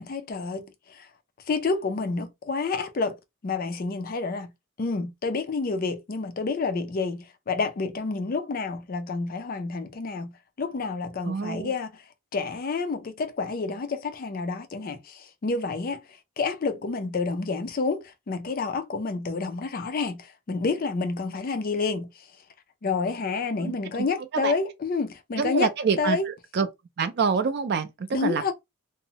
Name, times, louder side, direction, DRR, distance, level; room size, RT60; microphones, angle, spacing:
voice 1, 0.1-0.6 1.5-3.1 3.4-4.5 4.8-7.2 7.5-10.3 10.6-11.9 12.3-13.9 14.2-15.0 15.4-16.0 16.4-18.0 18.3-20.1 20.5-22.0 22.8-25.7 26.0-26.3 28.1-28.5, left 4 dB, 40° left, 0.3 m, -28 dB
voice 2, 11.3-11.8 23.6-24.1 24.3-24.6 25.4-26.7 27.0-28.5, right 5 dB, 45° right, 0.3 m, -27 dB
2.7 x 2.0 x 2.8 m
head